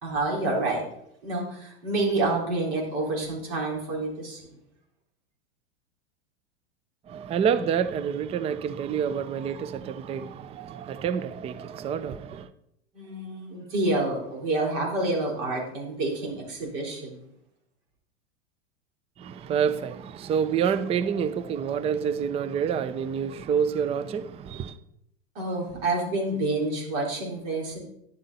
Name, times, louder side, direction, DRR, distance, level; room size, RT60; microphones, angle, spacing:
voice 1, 0.0-0.8 1.2-4.5 12.9-17.2 25.3-27.8, right 2 dB, 55° right, 4.1 m, -28 dB
voice 2, 7.1-12.5 19.2-24.8, right 7 dB, 20° right, 0.4 m, -28 dB
10.5 x 7.4 x 4.1 m
hypercardioid pair, 110°, 34 cm